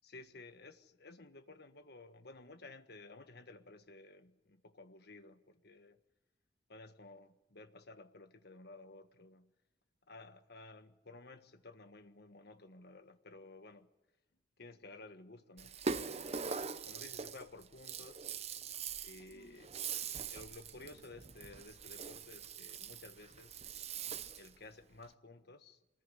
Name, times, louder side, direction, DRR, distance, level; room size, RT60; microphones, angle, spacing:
voice 1, 0.0-6.0 6.7-9.5 10.1-13.9 14.6-18.3 19.0-19.7 20.0-23.6 24.4-25.8, left 2 dB, 60° left, 1.5 m, -55 dB
Rattle (instrument), 15.6-24.6, right 5 dB, 35° right, 0.8 m, -43 dB
24.5 x 20.0 x 9.9 m
head